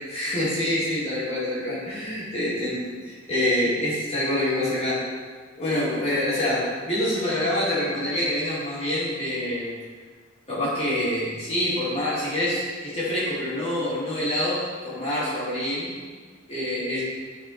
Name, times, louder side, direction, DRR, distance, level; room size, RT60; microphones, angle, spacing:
voice 1, 0.1-5.0 5.5-9.7 10.5-15.9 16.5-17.0, left 1 dB, 35° left, -10 dB, 3.0 m, -26 dB
13.0 x 5.0 x 4.4 m, 1.5 s
head